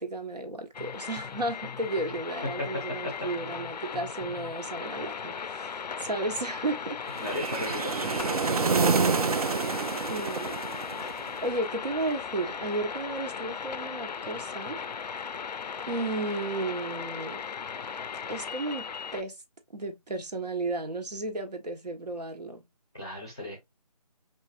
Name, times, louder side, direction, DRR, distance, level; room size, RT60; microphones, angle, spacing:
voice 1, 0.0-7.0 10.1-10.6 11.0-14.8 15.9-17.4 18.3-18.9 19.1-19.4 19.7-22.6, right 2 dB, 80° right, 1.3 m, -33 dB
sound 1, 0.7-19.2, left 6 dB, 90° left, 0.4 m, -37 dB
sound 2, 7.1-11.4, right 5 dB, 65° right, 0.5 m, -27 dB
voice 2, 7.2-8.9 22.9-23.6, left 2 dB, 5° left, 0.6 m, -38 dB
5.5 x 2.5 x 2.4 m
figure-of-eight pair, 175°, 21 cm